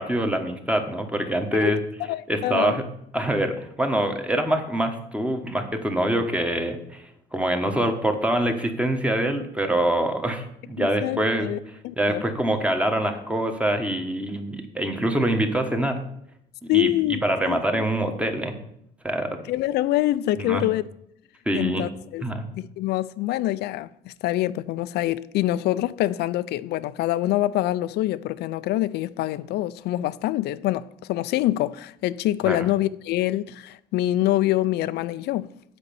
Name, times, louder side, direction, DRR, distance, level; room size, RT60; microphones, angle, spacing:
voice 1, 0.0-1.8 2.3-2.8 3.1-7.0 7.3-11.5 12.0-16.0 16.6-16.9 17.2-18.5 19.0-19.4 20.4-20.6 21.4-21.8 22.2-22.5 32.4-32.6, right 1 dB, 5° right, 1.3 m, -25 dB
voice 2, 2.1-2.8 10.8-12.2 16.7-17.2 17.5-17.9 19.5-20.8 21.5-22.2 22.6-35.5, left 15 dB, 75° left, 0.5 m, -25 dB
8.3 x 5.3 x 6.9 m
cardioid pair, 110°, 17 cm